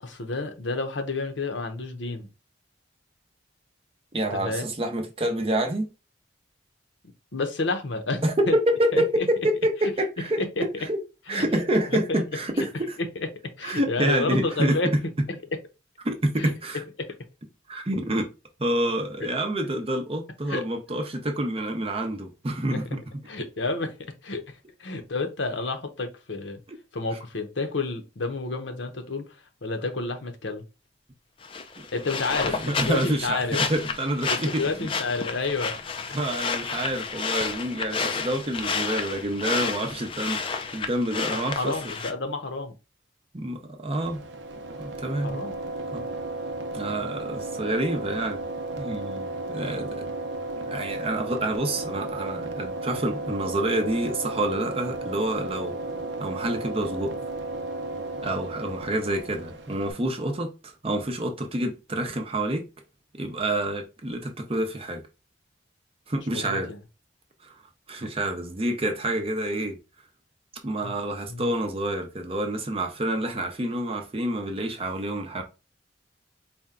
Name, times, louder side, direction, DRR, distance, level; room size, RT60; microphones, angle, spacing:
voice 1, 0.0-2.3 4.3-4.6 7.3-8.6 8.9-9.3 10.4-10.7 11.3-11.4 12.1-12.2 12.6-12.7 13.2-13.3 13.6-14.9 15.3-15.4 16.4-16.5 17.0-17.1 20.5-20.6 22.7-22.8 23.3-26.6 26.9-30.6 31.9-33.6 34.3-35.7 41.4-42.7 45.2-45.6 66.3-66.8 70.8-70.9 71.3-71.5, left 3 dB, 70° left, 0.8 m, -30 dB
voice 2, 4.1-5.9 8.2-11.0 11.3-13.0 13.6-14.8 16.0-16.8 17.7-18.3 18.6-23.0 32.5-33.4 33.7-34.9 36.1-41.7 43.3-44.2 44.8-45.4 45.9-46.0 46.7-48.4 48.8-50.0 50.6-55.7 56.2-57.1 58.2-62.6 63.1-65.0 66.1-66.7 67.4-67.5 67.9-69.8 70.6-75.4, right 1 dB, 30° right, 0.7 m, -28 dB
sound 1, 31.4-42.1, left 5 dB, 25° left, 0.4 m, -31 dB
sound 2, 43.9-59.9, right 2 dB, 70° right, 0.6 m, -34 dB
4.3 x 2.2 x 3.6 m
head